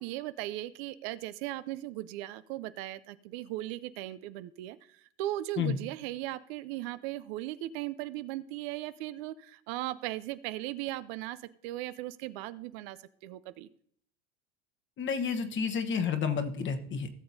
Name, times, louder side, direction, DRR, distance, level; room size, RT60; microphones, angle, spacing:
voice 1, 0.0-11.4 11.6-13.0 13.2-13.7, right 15 dB, 60° right, 15 dB, 0.5 m, -38 dB
voice 2, 15.0-17.1, left 6 dB, 30° left, 7 dB, 1.1 m, -30 dB
17.0 x 6.9 x 2.7 m, 0.63 s
hypercardioid pair, 100°, 36 cm